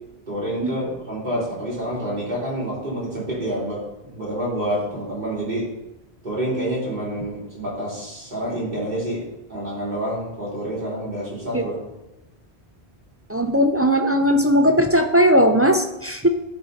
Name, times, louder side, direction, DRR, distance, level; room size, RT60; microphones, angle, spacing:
voice 1, 0.3-5.7 6.2-9.2 9.5-11.7, right 1 dB, 45° right, -7 dB, 3.6 m, -28 dB
voice 2, 13.3-16.3, equal, 25° right, 5 dB, 0.3 m, -18 dB
12.0 x 5.1 x 4.1 m, 0.95 s
omnidirectional pair, 1.1 m